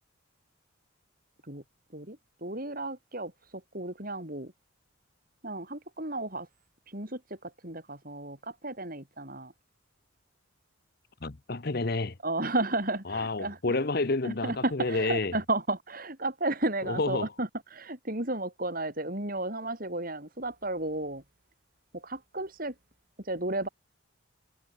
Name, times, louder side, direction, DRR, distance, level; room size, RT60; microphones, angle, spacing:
voice 1, 1.9-4.5 5.4-6.5 6.9-9.5 12.2-13.8 14.2-21.2 21.9-22.7 23.2-23.7, right 2 dB, 40° right, 4.3 m, -33 dB
voice 2, 11.2-12.2 13.1-15.3 16.9-17.3, left 3 dB, 50° left, 1.0 m, -29 dB
head